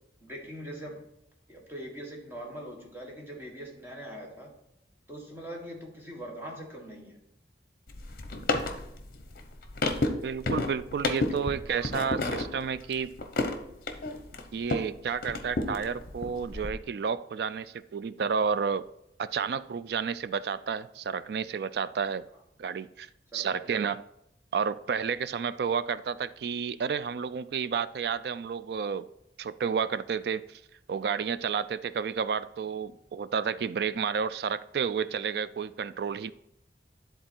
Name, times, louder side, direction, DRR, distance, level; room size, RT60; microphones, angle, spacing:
voice 1, 0.2-1.0 1.5-4.5 5.1-7.2 11.3-12.1 12.9-13.0 23.3-23.7, equal, 15° right, -1 dB, 1.5 m, -42 dB
sound 1, 7.9-14.9 15.2-16.7, left 2 dB, 55° left, 0.8 m, -32 dB
voice 2, 10.1-13.1 14.5-18.9 19.2-22.2 22.6-23.1 23.3-24.0 24.5-29.1 29.4-30.6 30.9-36.3, right 6 dB, 65° right, 15 dB, 0.3 m, -31 dB
10.5 x 3.9 x 4.4 m, 0.78 s
head